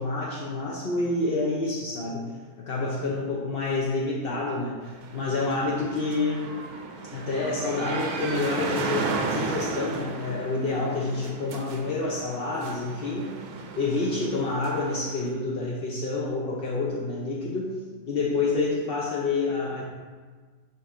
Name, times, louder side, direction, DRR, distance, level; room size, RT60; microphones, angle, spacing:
voice 1, 0.0-2.3 2.6-4.8 5.1-6.5 7.1-13.4 13.7-19.8, left 3 dB, 55° left, -4 dB, 0.6 m, -28 dB
sound 1, 4.8-15.3, right 4 dB, 70° right, 1.1 m, -34 dB
5.2 x 5.2 x 3.7 m, 1.5 s
omnidirectional pair, 1.8 m